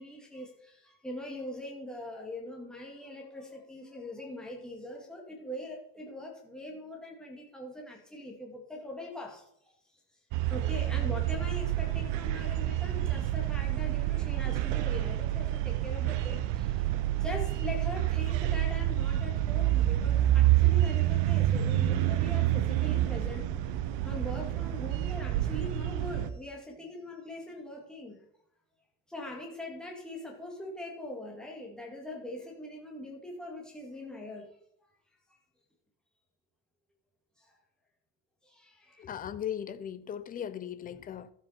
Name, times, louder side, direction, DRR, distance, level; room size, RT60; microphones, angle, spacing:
voice 1, 0.0-9.4 10.5-23.5 24.0-28.2 29.1-34.5 38.4-39.1, left 1 dB, ahead, 2.2 m, -42 dB
sound 1, 10.3-26.3, right 13 dB, 80° right, 1.0 m, -28 dB
voice 2, 39.0-41.3, left 9 dB, 20° left, 0.4 m, -38 dB
12.5 x 7.7 x 4.4 m
cardioid pair, 170°, 42 cm